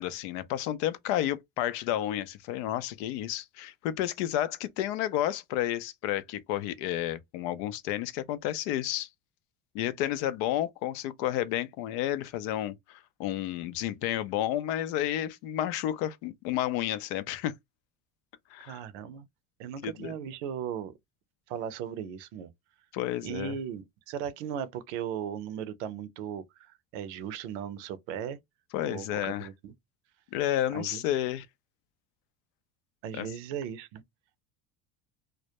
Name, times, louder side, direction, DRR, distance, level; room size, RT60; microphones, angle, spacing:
voice 1, 0.0-9.1 9.7-17.5 18.5-18.8 19.8-20.1 22.9-23.5 28.7-29.5 30.3-31.5 33.1-33.3, left 12 dB, 80° left, 0.5 m, -31 dB
voice 2, 18.7-19.3 19.6-20.9 21.5-22.5 23.2-28.4 28.9-29.7 30.7-31.0 33.0-34.0, right 8 dB, 85° right, 0.6 m, -37 dB
2.2 x 2.1 x 2.7 m
supercardioid pair, 105°, 35 cm